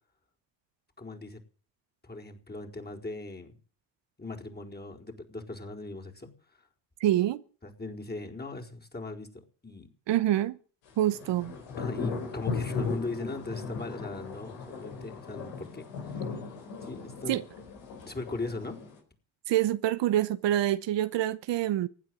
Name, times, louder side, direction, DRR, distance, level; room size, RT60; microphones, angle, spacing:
voice 1, 1.0-1.4 2.0-3.6 4.2-6.3 6.6-6.7 7.6-9.9 11.8-16.5 16.8-17.4 18.1-18.8, left 2 dB, 20° left, 4.4 m, -39 dB
voice 2, 7.0-7.4 10.1-10.6 11.0-11.5 17.3-17.4 19.5-21.9, right 13 dB, 70° right, 0.9 m, -26 dB
sound 1, 10.9-19.0, left 4 dB, 85° left, 4.4 m, -37 dB
16.0 x 9.6 x 9.3 m
supercardioid pair, 60°, 45 cm